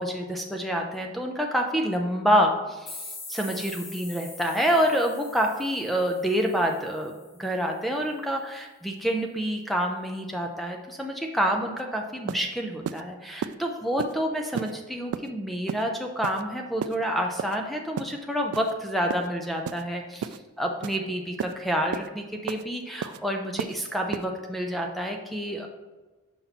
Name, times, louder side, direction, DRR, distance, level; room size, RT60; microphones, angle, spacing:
voice 1, 0.0-7.1 7.4-25.7, equal, ahead, 2 dB, 0.4 m, -28 dB
sound 1, 2.9-7.5, left 2 dB, 60° left, 2.1 m, -43 dB
sound 2, 11.8-11.9 12.3-12.4 12.8-13.0 13.4-13.5 14.0-14.1 14.5-14.7 15.1-15.3 15.7-15.8 16.2-16.4 16.8-17.0 17.4-17.6 18.0-18.1 18.5-18.7 19.1-19.3 19.6-19.8 20.2-20.4 20.8-21.0 21.4-21.5 21.9-22.1 22.5-22.6 23.0-23.2 23.6-23.8 24.1-24.2, right 7 dB, 85° right, 0.3 m, -32 dB
5.8 x 5.3 x 4.1 m, 1.2 s
head